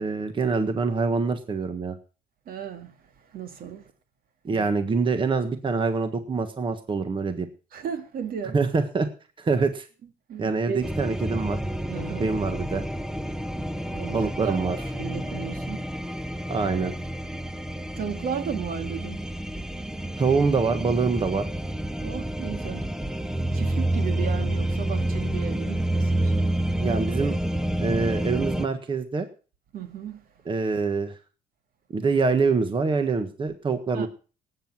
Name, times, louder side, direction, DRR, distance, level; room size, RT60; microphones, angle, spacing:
voice 1, 0.0-2.0 4.4-7.5 8.5-9.1 9.4-9.9 10.4-11.6 12.2-12.8 14.1-14.8 16.5-16.9 20.2-21.5 26.8-27.4 27.8-29.3 30.4-31.2 31.9-34.1, right 4 dB, 30° right, 1.5 m, -25 dB
voice 2, 2.5-3.0 3.3-3.9 4.5-4.9 7.7-8.6 10.3-10.9 11.9-12.3 13.9-15.9 18.0-19.3 22.0-22.9 23.5-26.5 29.7-30.2 33.9-34.1, right 8 dB, 60° right, 2.1 m, -35 dB
sound 1, 10.8-28.7, right 1 dB, 5° right, 0.8 m, -29 dB
18.5 x 8.0 x 6.0 m
cardioid pair, 110°, 17 cm